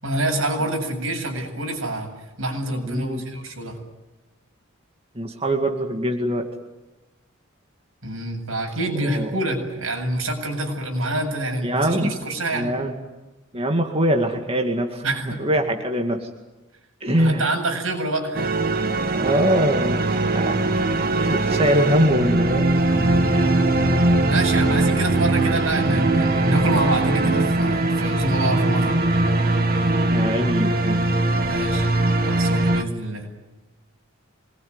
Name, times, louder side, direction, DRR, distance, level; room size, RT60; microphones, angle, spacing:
voice 1, 0.0-2.1 2.4-3.8 8.0-12.7 15.0-15.6 17.2-18.5 24.3-29.0 31.5-31.9 32.3-33.3, right 2 dB, 80° right, 2 dB, 8.0 m, -26 dB
voice 2, 2.9-3.2 5.1-6.5 9.0-9.3 11.6-12.1 12.5-12.9 13.5-15.0 15.4-16.3 17.0-17.4 19.1-20.9 21.2-22.6 23.2-23.6 30.1-31.0, equal, 30° right, 2 dB, 2.3 m, -23 dB
sound 1, 18.3-32.8, right 2 dB, 50° right, 2.0 m, -21 dB
27.0 x 21.5 x 9.7 m, 1.1 s
head